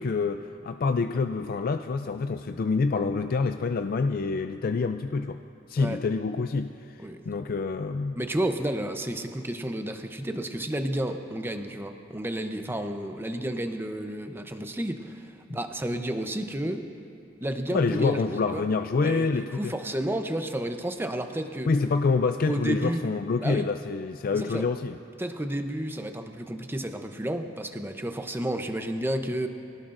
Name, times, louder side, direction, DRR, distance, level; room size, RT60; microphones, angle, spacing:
voice 1, 0.0-5.4 5.7-6.7 7.0-8.2 17.7-19.7 21.7-24.9, left 4 dB, 50° left, 7 dB, 0.4 m, -27 dB
voice 2, 8.2-16.9 17.4-18.6 19.0-21.7 22.5-23.0 23.4-23.7 24.3-24.7 25.2-29.5, right 1 dB, 10° right, 6 dB, 0.7 m, -31 dB
24.0 x 17.5 x 2.6 m, 2.5 s
head